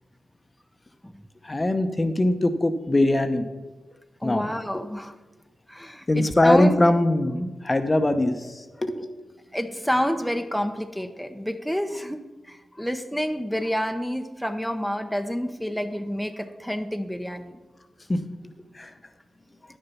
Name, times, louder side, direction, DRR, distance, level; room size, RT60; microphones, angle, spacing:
voice 1, 1.4-3.5 4.2-4.5 6.1-9.1 18.1-18.2 18.7-18.9, left 1 dB, 30° left, 8 dB, 0.9 m, -22 dB
voice 2, 4.2-5.1 5.7-6.8 9.5-12.2 12.5-17.6, equal, ahead, 6 dB, 0.9 m, -28 dB
9.8 x 6.7 x 5.8 m, 1.2 s
supercardioid pair, 40°, 0 cm